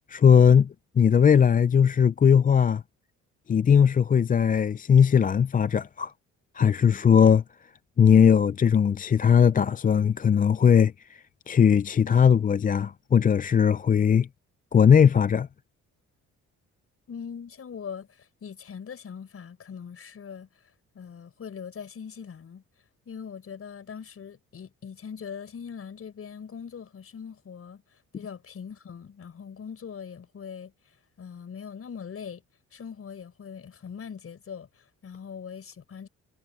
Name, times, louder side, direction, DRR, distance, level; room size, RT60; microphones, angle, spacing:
voice 1, 0.1-2.8 3.5-6.1 6.5-7.4 8.0-14.3 14.7-15.5, left 7 dB, 30° left, 0.4 m, -19 dB
voice 2, 17.1-20.5 20.9-22.6 23.1-30.7 31.2-32.4 32.7-36.1, left 7 dB, 50° left, 5.5 m, -41 dB
cardioid pair, 90°, 30 cm